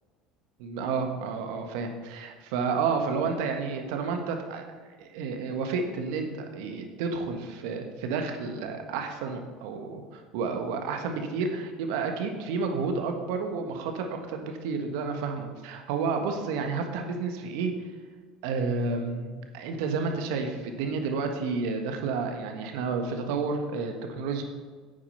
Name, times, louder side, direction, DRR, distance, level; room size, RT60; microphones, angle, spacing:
voice 1, 0.6-4.6 5.0-17.7 18.4-24.4, right 4 dB, 70° right, 5 dB, 1.5 m, -31 dB
9.7 x 8.7 x 5.6 m, 1.5 s
hypercardioid pair, 70°, 3 cm